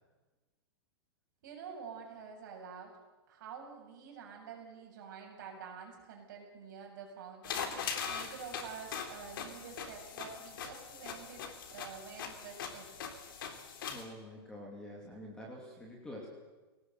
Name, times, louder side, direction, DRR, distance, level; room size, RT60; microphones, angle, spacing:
voice 1, 1.4-2.9 3.3-12.9, right 6 dB, 45° right, 1 dB, 7.6 m, -48 dB
sound 1, 7.4-14.0, left 6 dB, 55° left, 3.6 m, -41 dB
voice 2, 13.9-16.3, left 1 dB, 5° left, -2 dB, 2.9 m, -47 dB
23.5 x 18.5 x 8.1 m, 1.2 s
supercardioid pair, 175°, 14 cm